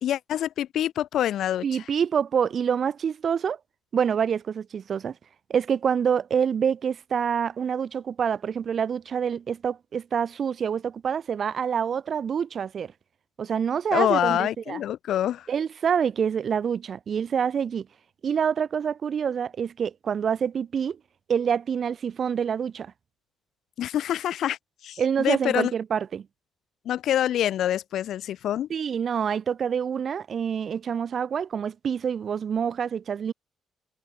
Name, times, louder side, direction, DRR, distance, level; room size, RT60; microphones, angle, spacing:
voice 1, 0.0-1.8 13.9-15.5 23.8-24.6 24.8-25.7 26.8-28.7, left 11 dB, 75° left, 1.4 m, -26 dB
voice 2, 1.6-3.6 3.9-5.1 5.5-12.9 13.4-14.8 15.5-17.9 18.2-21.0 21.3-22.9 25.0-26.3 28.7-33.3, right 7 dB, 50° right, 0.4 m, -26 dB
cardioid pair, 90°, 0 cm